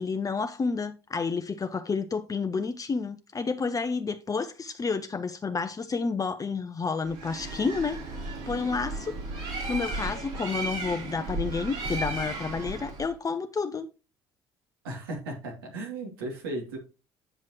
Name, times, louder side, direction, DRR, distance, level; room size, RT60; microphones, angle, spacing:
voice 1, 0.0-8.0 8.5-13.9, left 4 dB, 30° left, 0.8 m, -30 dB
Bird, 7.1-13.1, right 2 dB, 65° right, 3.6 m, -35 dB
voice 2, 14.8-16.8, right 2 dB, 90° right, 2.7 m, -36 dB
9.1 x 5.8 x 3.1 m
hypercardioid pair, 60°, 12 cm